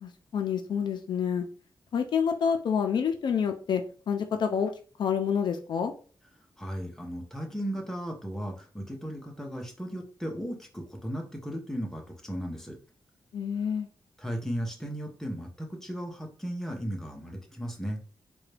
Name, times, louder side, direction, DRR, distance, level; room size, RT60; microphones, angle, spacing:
voice 1, 0.0-1.4 1.9-4.7 5.0-5.9 13.3-13.9, left 7 dB, 60° left, 6 dB, 0.4 m, -28 dB
voice 2, 6.6-12.8 14.2-18.0, equal, 5° left, 1 dB, 0.6 m, -36 dB
3.8 x 2.2 x 3.2 m, 0.41 s
wide cardioid pair, 170°, 9 cm